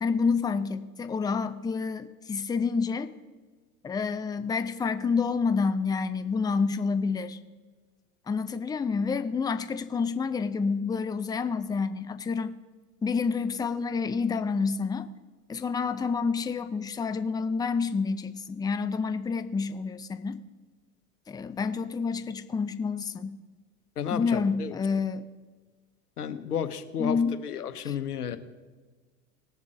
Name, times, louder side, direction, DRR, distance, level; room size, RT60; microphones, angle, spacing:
voice 1, 0.0-3.1 3.8-7.4 8.3-12.5 13.0-15.1 15.5-20.4 21.3-23.4 24.1-25.2 27.0-27.4 27.8-28.0, left 5 dB, 10° left, 10 dB, 0.5 m, -28 dB
voice 2, 24.0-24.7 26.2-28.4, left 8 dB, 85° left, 11 dB, 1.0 m, -32 dB
19.0 x 7.2 x 3.7 m, 1.3 s
hypercardioid pair, 85°, 44 cm